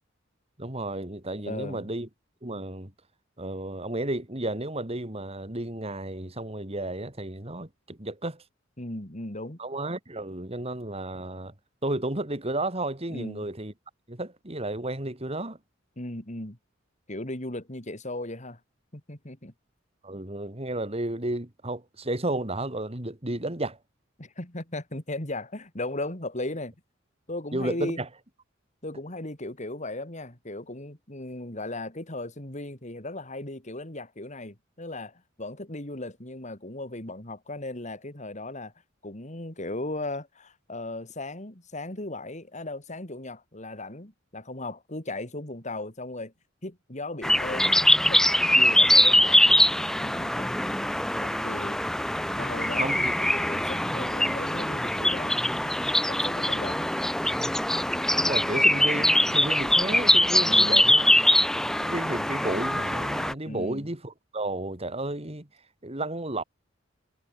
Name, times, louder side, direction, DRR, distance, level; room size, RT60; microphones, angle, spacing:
voice 1, 0.6-2.1 2.4-2.9 3.4-8.4 9.6-11.5 11.8-13.7 14.1-15.6 20.0-23.8 27.5-28.1 52.8-53.1 58.1-61.1 61.8-65.5 65.8-66.4, right 1 dB, 30° right, 3.0 m, -32 dB
voice 2, 1.5-1.9 8.8-9.6 13.1-13.5 16.0-16.6 17.1-18.6 18.9-19.5 24.2-26.7 27.3-28.0 28.8-38.7 39.0-46.3 46.6-48.2 48.5-49.4 49.8-50.9 51.1-51.8 52.3-55.4 55.7-57.0 60.4-60.9 63.5-63.9, left 2 dB, 40° left, 3.6 m, -37 dB
sound 1, 47.2-63.3, left 1 dB, 5° left, 0.3 m, -23 dB
head